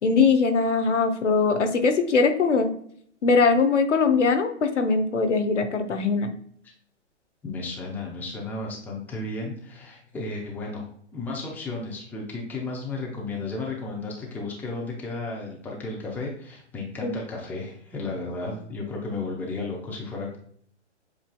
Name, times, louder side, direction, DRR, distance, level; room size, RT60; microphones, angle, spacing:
voice 1, 0.0-2.7 3.2-6.3 17.0-17.1, left 4 dB, 80° left, 7 dB, 0.8 m, -21 dB
voice 2, 7.4-20.4, left 3 dB, 5° left, -2 dB, 0.6 m, -33 dB
7.6 x 2.7 x 2.2 m, 0.62 s
hypercardioid pair, 130°, 36 cm